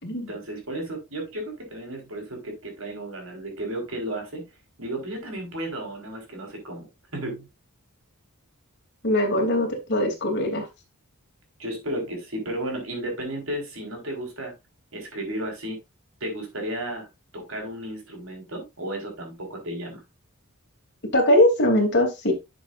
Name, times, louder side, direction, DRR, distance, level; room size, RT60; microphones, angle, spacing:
voice 1, 0.3-4.4 4.8-6.9 7.1-7.5 11.6-14.5 14.9-15.8 16.2-17.1 17.3-20.0, right 1 dB, 65° right, 4.4 m, -33 dB
voice 2, 9.0-10.7 21.1-22.3, left 1 dB, 55° left, 3.1 m, -21 dB
11.5 x 6.9 x 2.6 m
head